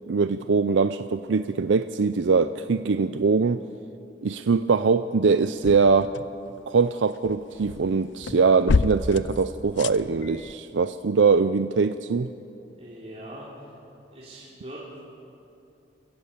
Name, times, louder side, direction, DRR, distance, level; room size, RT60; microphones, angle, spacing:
voice 1, 0.1-3.6 4.2-6.1 6.7-12.3, right 4 dB, 75° right, 11 dB, 0.5 m, -22 dB
sound 1, 5.5-6.6 6.9-10.5, left 4 dB, 75° left, 0.5 m, -29 dB
voice 2, 12.7-13.7 14.1-15.0, right 1 dB, 35° right, -7 dB, 3.1 m, -42 dB
27.0 x 15.5 x 7.3 m, 2.7 s
head